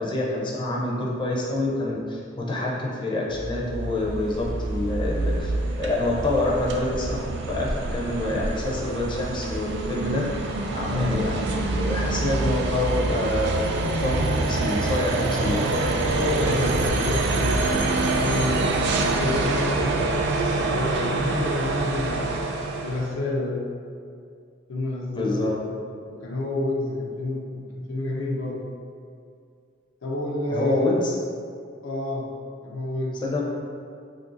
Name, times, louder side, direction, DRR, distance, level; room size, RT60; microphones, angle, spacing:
voice 1, 0.0-10.2 10.7-15.7 25.1-25.6 30.5-31.1 33.2-33.4, left 2 dB, 25° left, -4 dB, 0.4 m, -27 dB
sound 1, 3.3-23.1, right 2 dB, 60° right, 0.3 m, -26 dB
voice 2, 10.8-11.4 16.1-18.7 19.0-22.5 22.8-23.7 24.7-25.6 26.1-28.6 30.0-30.9 31.8-32.3 32.6-33.2, left 2 dB, 80° left, 0 dB, 0.5 m, -29 dB
2.7 x 2.5 x 3.8 m, 2.3 s
head